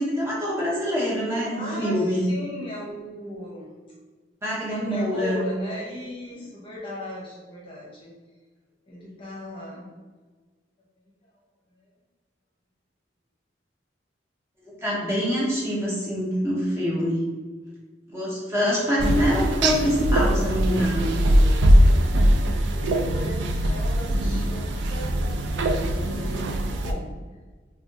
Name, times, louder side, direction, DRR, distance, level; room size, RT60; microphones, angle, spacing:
voice 1, 0.0-2.3 4.4-5.5 14.6-17.2 18.1-21.1, equal, 15° right, -6 dB, 0.7 m, -25 dB
voice 2, 1.6-3.9 4.7-8.1 8.9-9.9 21.4-22.1 22.7-27.1, left 1 dB, 30° left, -5 dB, 0.8 m, -37 dB
sound 1, 19.0-26.9, equal, 80° right, 0.3 m, -21 dB
3.3 x 2.3 x 2.6 m, 1.4 s
head